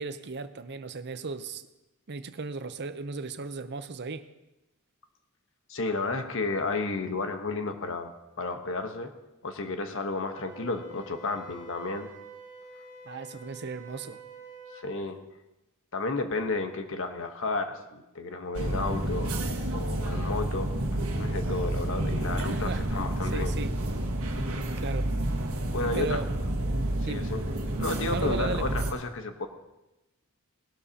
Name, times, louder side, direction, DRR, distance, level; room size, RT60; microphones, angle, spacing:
voice 1, 0.0-1.6 2.1-4.2 13.0-14.2 22.4-22.9 23.2-23.8 24.8-25.1 25.9-26.3 27.0-27.3 28.1-28.7, right 4 dB, 50° right, 10 dB, 0.7 m, -35 dB
voice 2, 5.7-9.1 9.4-12.1 14.7-15.2 15.9-19.4 19.7-20.7 21.2-23.6 25.7-26.2 27.0-27.4 27.8-29.5, left 3 dB, 65° left, 6 dB, 1.2 m, -32 dB
Wind instrument woodwind instrument, 10.3-14.9, right 3 dB, 30° left, 3.6 m, -47 dB
sound 1, 18.5-28.9, right 1 dB, 75° right, 1.6 m, -30 dB
19.0 x 12.0 x 2.9 m, 0.99 s
head